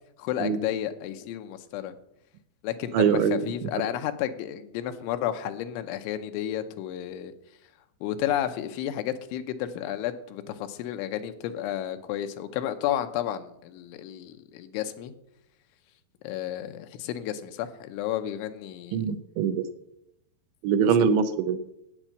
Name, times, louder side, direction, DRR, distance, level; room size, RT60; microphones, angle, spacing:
voice 1, 0.2-1.9 2.6-7.3 8.0-15.1 16.2-19.0 21.0-21.1, left 11 dB, 90° left, 9 dB, 3.2 m, -32 dB
voice 2, 2.9-3.4 18.9-19.6 20.6-21.6, right 7 dB, 80° right, 10 dB, 2.7 m, -23 dB
9.0 x 8.7 x 7.3 m, 0.81 s
omnidirectional pair, 5.4 m